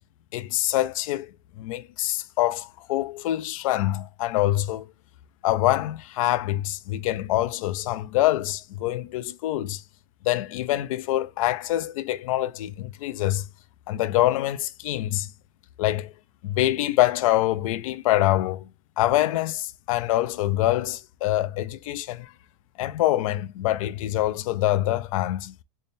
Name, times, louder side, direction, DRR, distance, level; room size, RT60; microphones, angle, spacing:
voice 1, 0.3-1.3 1.6-4.9 5.4-9.8 10.2-13.4 13.9-15.3 15.8-16.1 16.4-18.7 19.0-22.3 22.8-25.5, left 14 dB, 70° left, 0.4 m, -25 dB
3.6 x 2.2 x 4.0 m
supercardioid pair, 125°, 18 cm